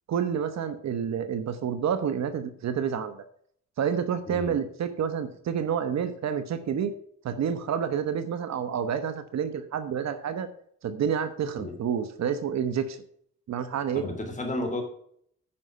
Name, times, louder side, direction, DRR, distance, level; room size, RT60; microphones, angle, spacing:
voice 1, 0.1-3.2 3.8-6.9 7.2-10.5 10.8-13.0 13.5-14.0, right 7 dB, 60° right, 11 dB, 1.1 m, -29 dB
voice 2, 4.3-4.6 11.4-11.8 13.9-14.8, left 2 dB, 25° left, 3 dB, 3.2 m, -33 dB
9.9 x 5.5 x 6.7 m, 0.64 s
cardioid pair, 90°, 30 cm